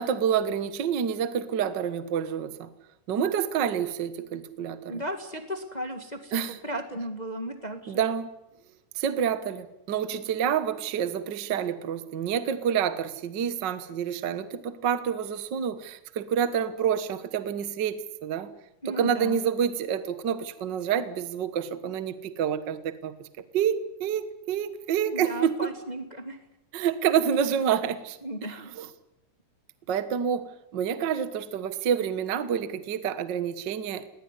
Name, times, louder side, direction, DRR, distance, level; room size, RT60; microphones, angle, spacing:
voice 1, 0.0-2.7 3.1-5.0 6.3-6.6 7.9-8.3 8.9-18.5 18.8-25.7 26.7-28.9 29.9-34.1, right 8 dB, 50° right, 12 dB, 1.4 m, -28 dB
voice 2, 4.9-8.0 18.8-19.4 25.1-26.4 28.2-28.7, equal, 20° left, 7 dB, 1.4 m, -35 dB
19.5 x 18.5 x 9.9 m, 0.87 s
omnidirectional pair, 3.6 m